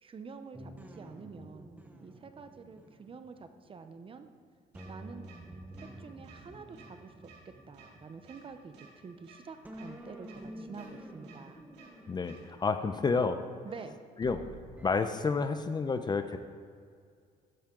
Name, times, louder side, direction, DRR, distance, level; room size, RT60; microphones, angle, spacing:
voice 1, 0.0-4.3 4.9-5.3 6.0-11.7 13.6-14.0, right 5 dB, 30° right, 9 dB, 0.8 m, -48 dB
sound 1, 0.5-4.3 4.7-9.3 9.6-14.9, right 1 dB, 10° right, 1.1 m, -50 dB
sound 2, 4.7-4.9 5.2-5.4 5.7-5.9 6.2-6.4 6.7-6.9 7.2-7.4 7.7-7.9 8.2-8.4 8.7-8.9 9.2-9.4 9.7-9.9 10.2-10.4 10.7-10.9 11.2-11.4 11.7-11.9 12.2-12.4, right 6 dB, 75° right, 2.7 m, -55 dB
voice 2, 12.1-13.4 14.2-14.4 14.8-16.4, left 4 dB, 25° left, 9 dB, 0.6 m, -30 dB
13.5 x 10.0 x 3.8 m, 2.1 s
cardioid pair, 110°, 17 cm